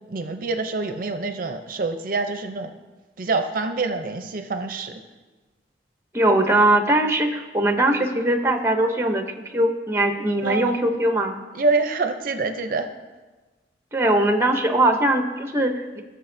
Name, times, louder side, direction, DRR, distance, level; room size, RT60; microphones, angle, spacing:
voice 1, 0.1-2.7 3.2-5.0 10.4-10.8 11.5-12.9, right 3 dB, 50° right, 7 dB, 0.5 m, -26 dB
voice 2, 6.1-9.2 9.5-11.4 13.9-16.0, right 1 dB, 15° right, 5 dB, 0.7 m, -20 dB
17.5 x 6.6 x 2.6 m, 1.3 s
head